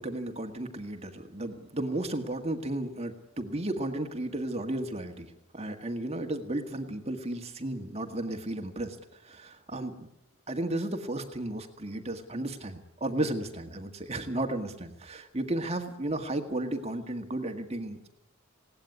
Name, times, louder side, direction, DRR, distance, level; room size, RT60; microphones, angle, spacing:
voice 1, 0.0-9.0 9.2-10.1 10.5-18.1, right 1 dB, 30° right, 6 dB, 1.8 m, -34 dB
20.5 x 17.5 x 9.7 m, 0.84 s
head